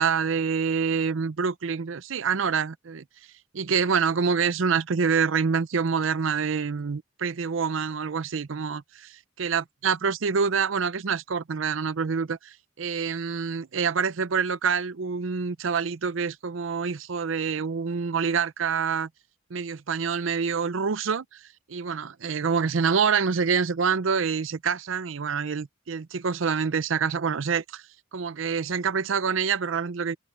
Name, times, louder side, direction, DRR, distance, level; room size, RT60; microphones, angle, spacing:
voice 1, 0.0-3.0 3.5-9.1 9.4-19.1 19.5-21.4 21.7-27.8 28.1-30.2, right 6 dB, 80° right, 0.6 m, -26 dB
head